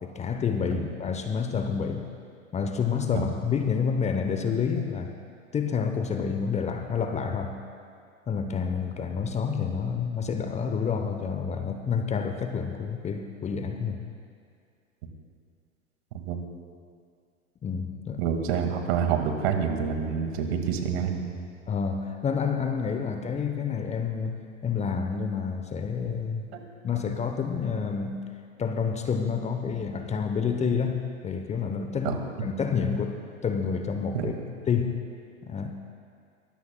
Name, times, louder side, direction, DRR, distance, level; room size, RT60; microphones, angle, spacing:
voice 1, 0.0-2.1 2.5-5.2 5.5-7.6 8.3-14.0 17.6-18.2 21.7-26.5 26.8-28.2 28.6-34.3 34.7-35.0 35.4-35.7, left 6 dB, 15° left, 6 dB, 0.8 m, -29 dB
voice 2, 18.2-21.4 26.5-26.6 32.0-32.2 34.1-34.3, right 7 dB, 55° right, 5 dB, 2.0 m, -27 dB
23.0 x 19.0 x 2.3 m, 2.3 s
figure-of-eight pair, 95°, 39 cm